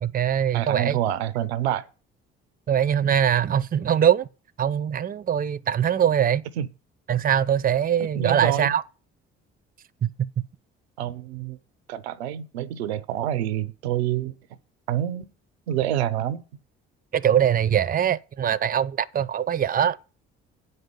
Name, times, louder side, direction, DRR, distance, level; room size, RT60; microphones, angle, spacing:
voice 1, 0.0-1.0 2.7-4.3 4.6-6.4 7.1-8.8 10.0-10.1 10.4-10.5 17.1-20.0, right 9 dB, 30° right, 0.5 m, -22 dB
voice 2, 0.5-1.9 6.6-6.7 8.0-8.7 11.0-11.6 11.9-14.4 14.9-15.3 15.7-16.4, right 11 dB, 85° right, 0.6 m, -27 dB
7.7 x 5.4 x 7.2 m
hypercardioid pair, 50°, 31 cm